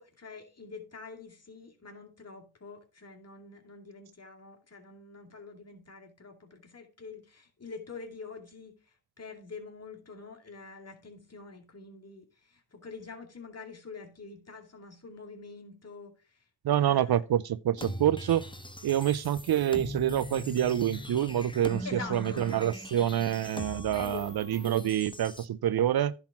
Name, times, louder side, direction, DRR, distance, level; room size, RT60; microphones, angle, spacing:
voice 1, 0.0-16.4 16.8-17.2 21.8-22.4 23.9-24.3, left 4 dB, 35° left, 2.4 m, -46 dB
voice 2, 16.6-18.4 18.8-26.1, right 11 dB, 65° right, 0.6 m, -27 dB
sound 1, 17.8-25.5, left 1 dB, 10° left, 1.1 m, -41 dB
10.5 x 4.0 x 5.9 m
cardioid pair, 50°, 41 cm